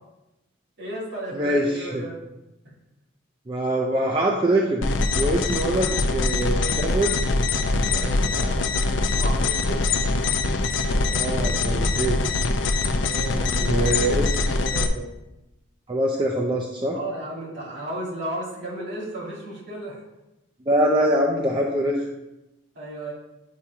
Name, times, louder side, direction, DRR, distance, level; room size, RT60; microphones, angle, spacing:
voice 1, 0.8-2.2 7.8-9.9 11.2-11.6 13.0-14.3 16.9-20.0 22.7-23.1, right 1 dB, 60° right, -4 dB, 2.5 m, -34 dB
voice 2, 1.3-2.0 3.5-4.9 5.2-7.2 11.1-12.2 13.6-15.1 15.9-17.0 20.7-22.1, right 1 dB, 25° right, -1 dB, 0.5 m, -24 dB
sound 1, 4.8-14.9, left 3 dB, 70° left, 0.5 m, -23 dB
8.3 x 3.0 x 4.7 m, 0.96 s
head